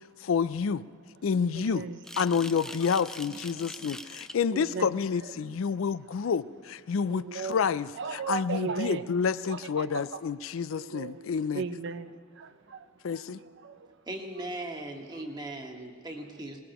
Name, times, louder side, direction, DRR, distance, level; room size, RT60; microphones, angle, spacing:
voice 1, 0.2-0.9 1.2-1.9 2.2-11.6 13.0-13.4, left 6 dB, 75° left, 17 dB, 0.4 m, -29 dB
voice 2, 1.5-2.0 2.6-2.7 3.5-4.2 4.5-5.0 5.4-5.6 7.1-7.6 8.0-9.1 9.4-10.2 10.7-12.9 13.1-14.0, right 5 dB, 60° right, 11 dB, 0.7 m, -37 dB
sound 1, 2.0-4.4, left 1 dB, 5° left, 0.3 m, -43 dB
voice 3, 14.1-16.6, right 1 dB, 20° right, 2 dB, 1.4 m, -38 dB
22.0 x 20.0 x 3.0 m, 2.1 s
head